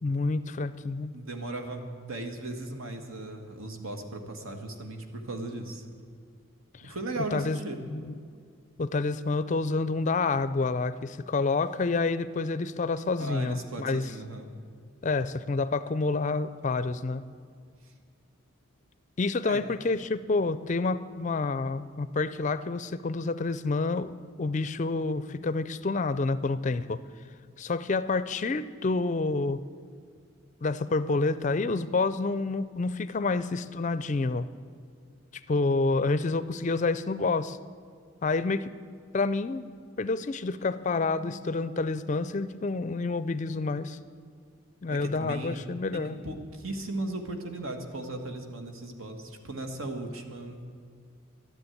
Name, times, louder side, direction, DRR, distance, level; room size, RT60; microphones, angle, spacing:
voice 1, 0.0-1.1 6.8-6.9 7.3-7.6 7.9-8.1 8.8-14.0 15.0-17.2 19.2-24.1 24.4-27.0 27.6-29.6 30.6-34.5 35.5-37.6 38.2-38.7 39.1-39.6 40.0-44.0 44.8-46.2, left 3 dB, 35° left, 14 dB, 0.4 m, -28 dB
voice 2, 1.1-5.8 6.8-7.8 13.2-14.5 19.4-19.6 44.9-45.5 45.9-50.6, right 2 dB, 80° right, 5 dB, 1.6 m, -37 dB
12.0 x 9.8 x 9.1 m, 2.2 s
head